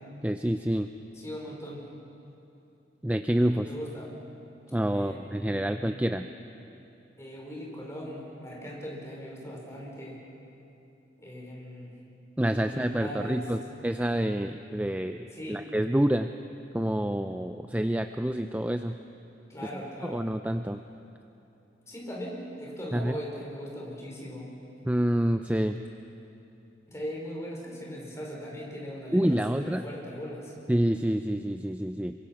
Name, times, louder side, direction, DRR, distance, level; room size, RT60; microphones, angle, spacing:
voice 1, 0.2-0.9 3.0-3.7 4.7-6.3 12.4-16.3 16.7-19.0 20.0-20.8 22.9-23.2 24.8-25.8 29.1-29.8 30.7-32.1, right 1 dB, 10° right, 7 dB, 0.5 m, -27 dB
voice 2, 1.2-1.9 3.5-4.2 4.9-6.0 7.2-10.2 11.2-11.9 12.5-13.4 15.3-15.6 19.5-20.3 21.9-24.5 26.9-30.5, equal, 15° left, -3 dB, 4.8 m, -39 dB
27.0 x 24.0 x 5.9 m, 2.8 s
head